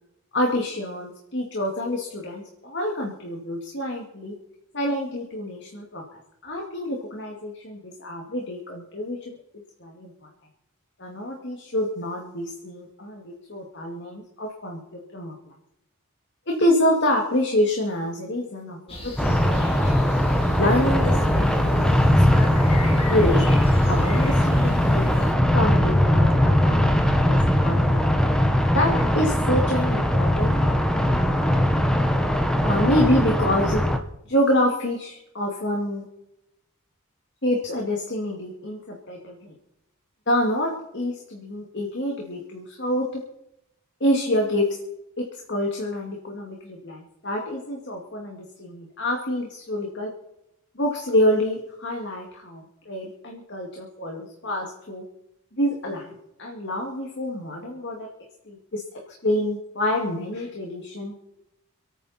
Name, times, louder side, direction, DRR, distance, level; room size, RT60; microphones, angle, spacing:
voice 1, 0.3-4.3 4.7-6.0 6.4-9.4 9.8-10.1 11.0-15.3 16.5-19.8 20.6-23.4 23.8-25.1 25.4-28.1 28.7-31.2 32.6-33.8 34.3-36.0 37.4-39.5 40.3-43.2 44.0-44.7 45.2-50.1 50.8-55.0 55.5-56.1 56.4-58.1 58.5-58.8 59.2-61.1, left 1 dB, 50° left, 0 dB, 2.2 m, -27 dB
sound 1, 18.9-25.3, equal, 25° left, 2.8 m, -36 dB
sound 2, 19.2-34.0, left 1 dB, 5° left, 1.1 m, -20 dB
27.5 x 9.4 x 4.3 m, 0.86 s
head